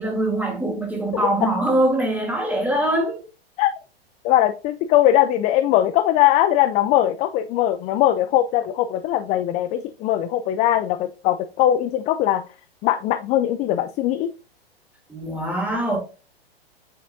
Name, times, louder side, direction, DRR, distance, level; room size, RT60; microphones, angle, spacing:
voice 1, 0.0-3.2 15.1-16.0, right 1 dB, 5° right, 2.8 m, -23 dB
voice 2, 1.1-1.5 3.6-3.7 4.2-12.4 12.8-14.3, left 12 dB, 25° left, 0.4 m, -20 dB
8.6 x 5.9 x 2.7 m
hypercardioid pair, 110°, 31 cm